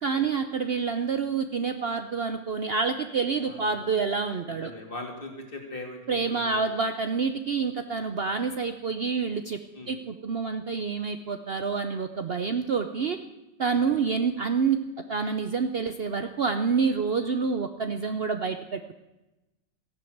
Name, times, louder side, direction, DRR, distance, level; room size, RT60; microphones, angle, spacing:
voice 1, 0.0-4.7 6.1-9.6 9.9-13.2 13.6-14.8 15.1-18.9, right 5 dB, 75° right, 8 dB, 0.5 m, -28 dB
voice 2, 3.4-3.8 4.5-6.6 9.7-9.9, left 2 dB, 25° left, 2 dB, 2.9 m, -40 dB
15.0 x 11.5 x 7.9 m, 1.0 s
omnidirectional pair, 2.1 m